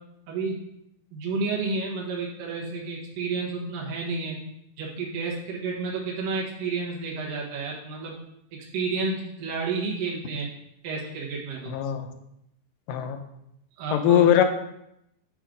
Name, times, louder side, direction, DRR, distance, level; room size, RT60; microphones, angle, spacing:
voice 1, 0.3-0.7 1.1-4.4 4.8-8.2 8.5-10.5 10.8-11.7 13.8-14.3, right 4 dB, 85° right, -3 dB, 2.9 m, -31 dB
voice 2, 11.7-12.0 12.9-13.2 13.9-14.4, left 11 dB, 85° left, 7 dB, 2.3 m, -20 dB
8.2 x 3.9 x 4.9 m, 0.80 s
omnidirectional pair, 3.8 m